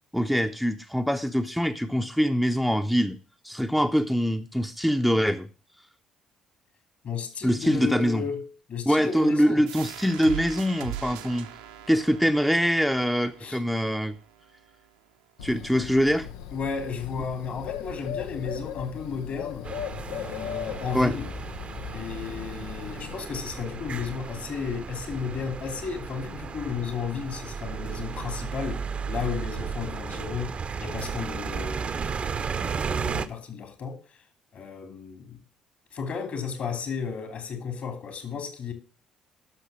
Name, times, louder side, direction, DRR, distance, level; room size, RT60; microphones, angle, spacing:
voice 1, 0.1-3.2 3.4-5.5 7.4-8.2 8.9-11.5 11.9-14.1 15.4-16.3 20.9-21.1, equal, ahead, 0.8 m, -24 dB
voice 2, 7.0-9.6 13.4-13.6 16.5-19.7 20.1-21.3 21.9-32.0 32.6-34.0 34.5-35.4 35.9-38.7, left 6 dB, 50° left, 2.7 m, -34 dB
sound 1, 9.7-15.1, right 10 dB, 75° right, 1.0 m, -41 dB
Bird, 15.4-23.1, left 9 dB, 70° left, 0.7 m, -38 dB
sound 2, 19.6-33.3, right 5 dB, 35° right, 0.9 m, -34 dB
12.0 x 6.5 x 6.2 m
figure-of-eight pair, 50°, 3 cm